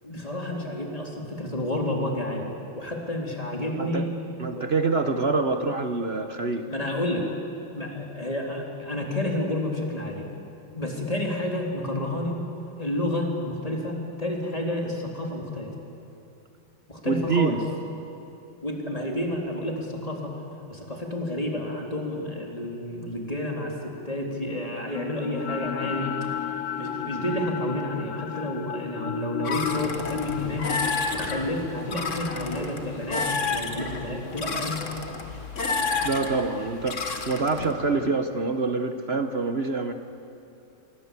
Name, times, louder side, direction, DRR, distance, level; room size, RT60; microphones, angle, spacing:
voice 1, 0.0-2.5 2.8-4.1 4.5-4.9 6.7-7.3 7.7-10.3 10.7-12.4 12.8-15.7 16.9-17.6 18.6-20.3 20.7-26.2 26.7-30.7 31.1-34.8, left 1 dB, 15° left, 0 dB, 3.4 m, -30 dB
voice 2, 4.4-6.7 17.1-17.6 36.0-39.9, right 3 dB, 40° right, 7 dB, 1.0 m, -26 dB
sound 1, 24.9-35.1, left 10 dB, 80° left, 0.7 m, -35 dB
sound 2, 29.4-37.7, left 4 dB, 40° left, 1.8 m, -31 dB
25.5 x 23.5 x 8.4 m, 2.9 s
omnidirectional pair, 2.3 m